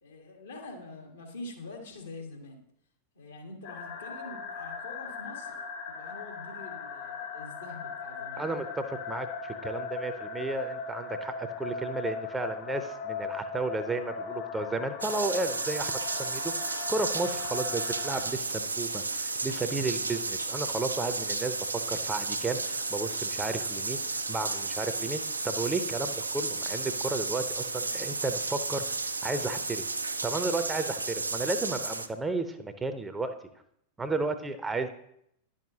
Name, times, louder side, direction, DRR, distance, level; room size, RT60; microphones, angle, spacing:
voice 1, 0.0-2.6 3.1-5.6 5.9-8.5, left 2 dB, 70° left, 2 dB, 1.4 m, -45 dB
sound 1, 3.6-18.2, left 5 dB, 50° left, 1.4 m, -38 dB
voice 2, 8.4-28.8 29.2-29.8 30.2-33.3 34.0-34.9, right 3 dB, 10° right, 9 dB, 0.6 m, -33 dB
sound 2, 15.0-32.1, right 3 dB, 80° right, 0.4 m, -33 dB
10.5 x 6.4 x 2.8 m, 0.73 s
figure-of-eight pair, 90°, 0 cm